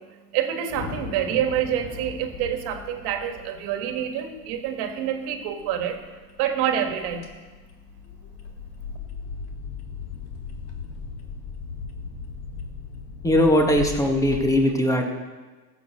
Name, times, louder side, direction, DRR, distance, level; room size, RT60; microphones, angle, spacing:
voice 1, 0.0-6.0 6.4-7.3, right 9 dB, 60° right, 6 dB, 1.8 m, -27 dB
sound 1, 0.7-5.1, left 5 dB, 45° left, 3.5 m, -40 dB
sound 2, 2.3-14.5, left 5 dB, 70° left, 1.9 m, -38 dB
voice 2, 13.2-15.1, left 1 dB, 5° left, 2 dB, 1.8 m, -20 dB
15.0 x 7.8 x 6.6 m, 1.3 s
supercardioid pair, 110°, 45 cm